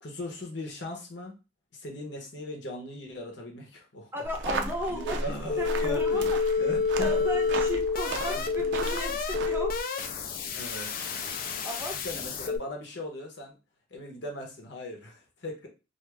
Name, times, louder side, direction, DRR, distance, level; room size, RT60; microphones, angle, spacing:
voice 1, 0.0-1.3 1.7-4.1 4.4-6.3 6.6-7.1 8.2-8.5 10.1-10.2 10.5-10.9 12.0-13.6 13.9-15.7, left 1 dB, 70° left, 1 dB, 0.9 m, -39 dB
voice 2, 4.1-5.2 5.6-6.6 7.0-9.8 11.6-12.0, left 1 dB, 10° right, 1 dB, 0.6 m, -35 dB
sound 1, 4.2-9.8, right 2 dB, 70° right, 0.5 m, -35 dB
sound 2, 5.5-12.6, left 5 dB, 50° left, 0.4 m, -29 dB
2.5 x 2.4 x 3.2 m, 0.29 s
head